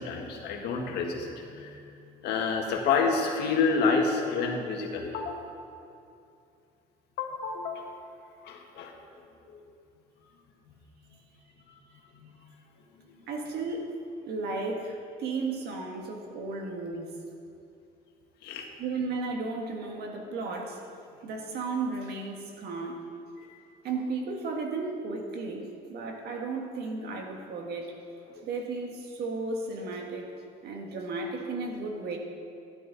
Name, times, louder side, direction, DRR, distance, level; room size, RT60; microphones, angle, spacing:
voice 1, 0.0-1.8 2.2-5.5 7.2-7.9 8.4-9.0 10.7-10.8 11.1-11.2 12.1-12.3 18.4-18.7, left 4 dB, 75° left, 1 dB, 1.7 m, -29 dB
voice 2, 13.3-13.9 14.3-17.1 18.8-20.8 21.2-23.0 23.8-27.9 28.4-32.2, right 3 dB, 70° right, 2 dB, 1.7 m, -34 dB
12.5 x 11.0 x 4.1 m, 2.6 s
cardioid pair, 110°, 17 cm